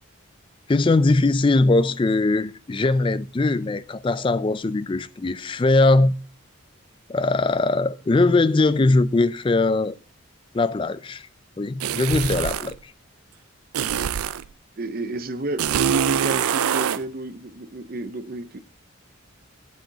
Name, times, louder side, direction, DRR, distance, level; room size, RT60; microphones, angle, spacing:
voice 1, 0.7-6.1 7.1-10.0 10.5-11.3 11.6-12.9, left 2 dB, 25° left, 0.3 m, -20 dB
sound 1, 11.8-12.8 13.7-14.5 15.6-17.0, right 8 dB, 85° right, 0.4 m, -24 dB
voice 2, 14.8-18.6, right 2 dB, 45° right, 0.6 m, -32 dB
7.9 x 7.4 x 5.2 m
head